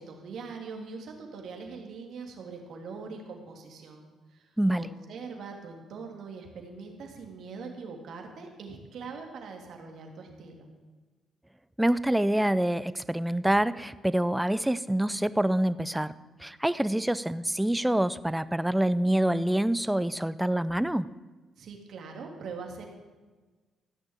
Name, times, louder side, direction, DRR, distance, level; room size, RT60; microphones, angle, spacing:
voice 1, 0.0-4.5 4.7-10.7 21.6-22.9, right 4 dB, 70° right, 3 dB, 2.8 m, -42 dB
voice 2, 4.6-4.9 11.8-16.1 16.4-21.1, right 1 dB, 5° right, 16 dB, 0.5 m, -26 dB
15.0 x 6.4 x 8.9 m, 1.3 s
cardioid pair, 90°, 0 cm